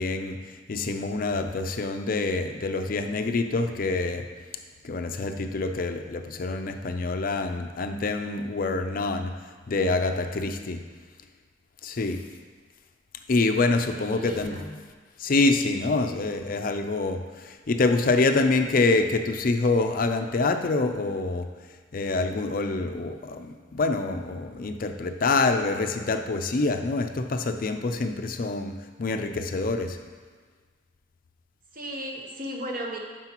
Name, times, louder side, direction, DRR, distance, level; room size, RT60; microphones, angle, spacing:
voice 1, 0.0-4.3 4.8-9.3 9.7-10.8 11.8-12.2 13.3-14.6 15.2-21.5 21.9-30.0, left 3 dB, 45° left, 6 dB, 0.5 m, -26 dB
voice 2, 14.0-14.7 31.7-33.0, equal, 45° right, 0 dB, 0.9 m, -36 dB
9.7 x 6.2 x 3.0 m, 1.5 s
head